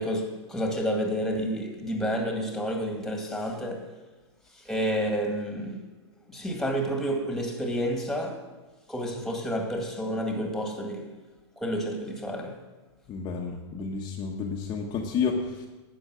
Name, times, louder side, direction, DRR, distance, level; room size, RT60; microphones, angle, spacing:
voice 1, 0.0-3.9 4.6-5.9 6.3-8.4 8.9-11.1 11.6-12.6, equal, ahead, 2 dB, 2.0 m, -30 dB
voice 2, 13.1-15.7, left 5 dB, 30° left, 0 dB, 1.2 m, -30 dB
12.0 x 8.6 x 6.3 m, 1.2 s
hypercardioid pair, 130°, 15 cm